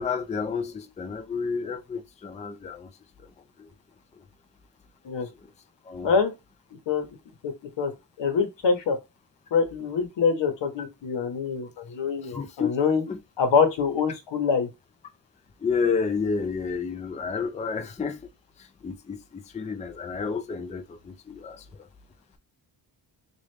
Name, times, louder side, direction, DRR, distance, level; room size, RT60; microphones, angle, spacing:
voice 1, 0.0-2.9 3.2-3.3 3.6-3.7 4.2-4.3 5.4-5.5 5.8-6.1 12.2-12.7 13.1-13.2 15.6-18.2 18.6-21.9, left 5 dB, 15° left, 0.4 m, -30 dB
voice 2, 8.2-9.0 9.5-13.0 13.4-14.7, left 5 dB, 85° left, 1.0 m, -24 dB
3.1 x 2.5 x 3.2 m
wide cardioid pair, 110°, 43 cm